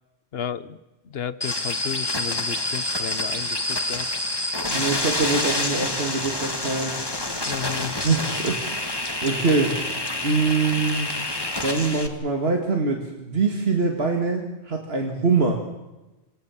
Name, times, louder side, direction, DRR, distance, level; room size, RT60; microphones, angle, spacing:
voice 1, 0.3-0.8 1.0-4.1 7.5-7.9, left 8 dB, 65° left, 15 dB, 1.1 m, -33 dB
sound 1, 1.4-12.1, left 1 dB, 20° left, 1.8 m, -27 dB
voice 2, 4.7-7.0 8.0-8.8 9.2-9.8 10.2-11.2 11.6-15.6, right 4 dB, 70° right, 2 dB, 2.4 m, -24 dB
27.5 x 18.0 x 7.3 m, 1.1 s
omnidirectional pair, 1.1 m